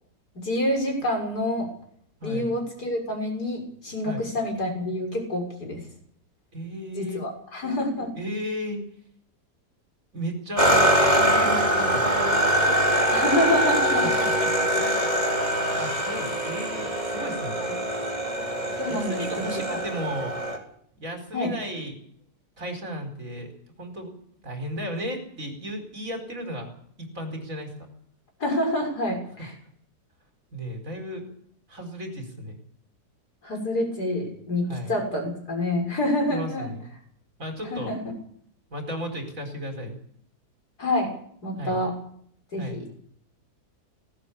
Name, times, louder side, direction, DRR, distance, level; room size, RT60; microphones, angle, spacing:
voice 1, 0.3-1.7 2.2-5.8 6.9-8.2 13.1-14.1 14.4-14.5 17.6-17.8 18.8-19.8 21.3-21.5 28.4-29.5 33.4-36.7 37.7-38.0 40.8-41.2 41.4-42.0 42.5-42.9, left 1 dB, 65° left, 2 dB, 7.0 m, -27 dB
voice 2, 2.2-2.5 4.0-4.3 6.5-7.2 8.2-8.8 10.1-12.1 14.2-15.1 15.8-17.6 18.9-20.3 21.0-21.9 22.6-23.5 23.8-24.1 24.4-26.7 27.0-27.7 30.5-31.3 31.7-32.6 34.7-34.9 36.3-36.9 37.4-37.9 38.7-40.0 41.6-41.8 42.6-42.8, equal, 50° right, 5 dB, 5.2 m, -34 dB
sound 1, 10.6-20.6, equal, 25° right, 3.9 m, -23 dB
19.0 x 18.0 x 8.6 m, 0.64 s
omnidirectional pair, 1.8 m